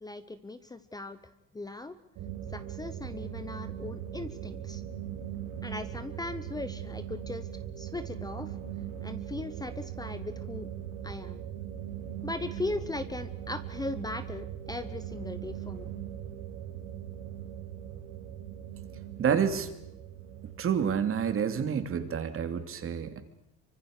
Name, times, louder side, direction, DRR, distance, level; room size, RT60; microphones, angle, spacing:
voice 1, 0.0-1.2 1.5-1.9 2.5-4.8 5.6-7.5 7.8-8.5 9.0-10.7 11.0-11.4 12.2-15.9, left 2 dB, 10° left, 12 dB, 0.9 m, -38 dB
sound 1, 2.2-21.6, right 10 dB, 70° right, 6.7 m, -40 dB
voice 2, 19.2-19.7 20.6-23.2, right 7 dB, 40° right, 9 dB, 2.7 m, -28 dB
25.5 x 24.5 x 6.6 m, 0.79 s
cardioid pair, 125°, 32 cm